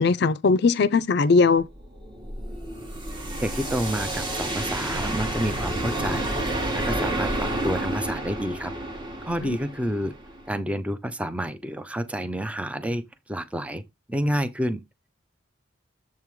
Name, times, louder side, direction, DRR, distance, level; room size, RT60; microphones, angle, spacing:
voice 1, 0.0-1.7 9.4-9.6, left 4 dB, 60° left, 0.5 m, -19 dB
sound 1, 1.6-10.5, right 1 dB, 25° right, 1.7 m, -30 dB
voice 2, 3.4-6.3 6.7-8.7 9.2-10.1 10.5-13.0 13.3-13.8 14.1-14.8, equal, 5° right, 0.6 m, -29 dB
7.5 x 3.7 x 4.7 m
head